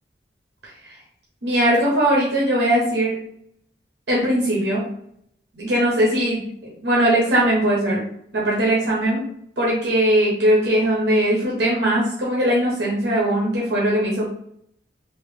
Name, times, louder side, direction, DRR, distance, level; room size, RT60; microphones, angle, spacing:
voice 1, 1.4-3.2 4.1-4.8 5.6-6.4 6.8-8.0 8.3-9.2 9.6-14.3, right 1 dB, 70° right, -4 dB, 1.0 m, -20 dB
3.0 x 2.8 x 3.3 m, 0.69 s
head